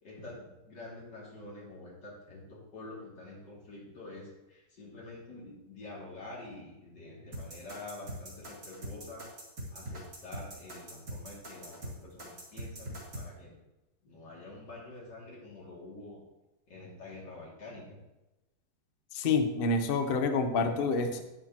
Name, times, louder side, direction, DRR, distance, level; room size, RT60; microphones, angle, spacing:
voice 1, 0.0-9.3 9.7-13.6 14.0-16.2 16.7-18.0, left 2 dB, 75° left, -4 dB, 3.2 m, -47 dB
sound 1, 7.3-13.3, right 1 dB, 70° right, 3.0 m, -42 dB
voice 2, 19.1-21.2, left 4 dB, 50° left, 6 dB, 0.7 m, -28 dB
10.0 x 9.4 x 2.9 m, 1.0 s
omnidirectional pair, 1.9 m